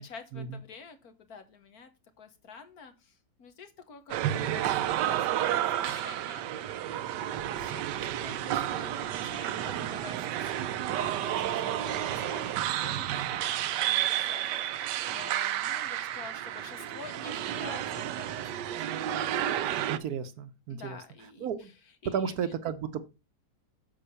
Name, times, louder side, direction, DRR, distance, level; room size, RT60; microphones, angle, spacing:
voice 1, 0.0-1.9 2.2-19.1 20.7-21.7 22.0-22.5, left 5 dB, 65° left, 8 dB, 1.7 m, -49 dB
sound 1, 4.1-20.0, right 12 dB, 85° right, 1.3 m, -31 dB
voice 2, 19.9-21.0 21.4-21.7 22.0-23.0, right 7 dB, 70° right, 11 dB, 1.2 m, -33 dB
9.0 x 4.1 x 6.9 m, 0.29 s
omnidirectional pair, 1.8 m